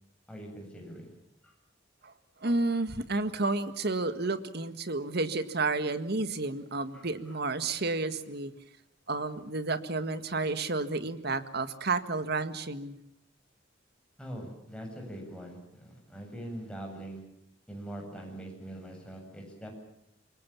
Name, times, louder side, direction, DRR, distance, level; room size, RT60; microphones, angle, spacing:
voice 1, 0.3-1.1 1.4-1.5 6.9-7.3 14.2-17.2 17.7-19.7, right 1 dB, 5° left, 1 dB, 7.8 m, -43 dB
voice 2, 2.4-8.5 9.1-13.0, right 3 dB, 60° right, 11 dB, 1.7 m, -31 dB
27.0 x 23.5 x 7.1 m, 0.75 s
head